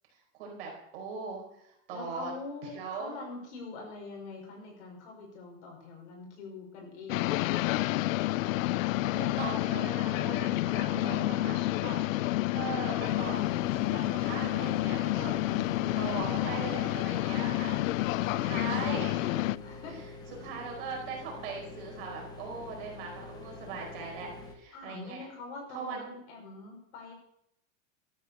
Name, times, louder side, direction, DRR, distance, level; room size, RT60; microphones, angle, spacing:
voice 1, 0.3-2.3 2.6-3.2 9.1-12.0 12.5-15.7 16.0-19.5 19.9-20.0 20.4-25.2 25.7-26.2, right 5 dB, 45° right, 0 dB, 4.5 m, -40 dB
voice 2, 1.9-8.1 10.8-11.9 15.4-16.3 17.3-17.6 18.2-18.5 19.6-19.9 24.7-27.1, left 3 dB, 60° left, 0 dB, 5.6 m, -44 dB
sound 1, 7.1-19.6, left 17 dB, 85° left, 0.5 m, -29 dB
sound 2, 13.0-24.5, left 3 dB, 10° left, 0.8 m, -46 dB
12.5 x 8.4 x 6.6 m, 0.75 s
supercardioid pair, 180°, 39 cm